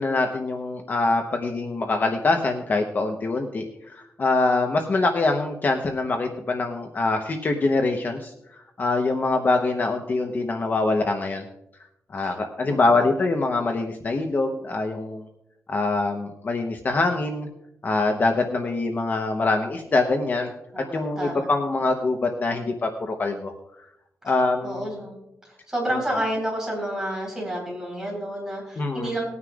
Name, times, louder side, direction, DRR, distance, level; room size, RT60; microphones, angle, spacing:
voice 1, 0.0-8.3 8.8-11.4 12.1-15.2 15.7-17.5 17.8-20.5 20.9-23.5 24.2-24.9 28.8-29.1, left 3 dB, 40° left, 3 dB, 0.9 m, -24 dB
voice 2, 12.6-13.1 20.7-21.5 24.6-25.2 25.5-29.2, right 1 dB, 10° right, -2 dB, 4.1 m, -30 dB
19.5 x 9.6 x 2.4 m, 0.82 s
wide cardioid pair, 165°, 5 cm